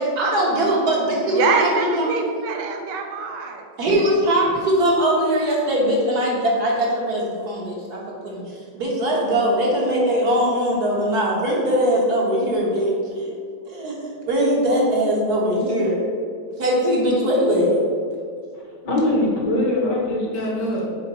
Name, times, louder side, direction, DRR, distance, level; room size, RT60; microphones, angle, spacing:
voice 1, 0.0-2.1 3.8-8.4 8.7-13.3 13.7-13.9 14.3-16.0 16.6-17.8, equal, 60° right, -4 dB, 1.7 m, -21 dB
voice 2, 1.3-3.7, right 5 dB, 75° right, 3 dB, 1.1 m, -24 dB
voice 3, 18.8-20.9, left 1 dB, 65° left, -2 dB, 1.8 m, -22 dB
5.8 x 4.5 x 4.1 m, 2.2 s
omnidirectional pair, 2.0 m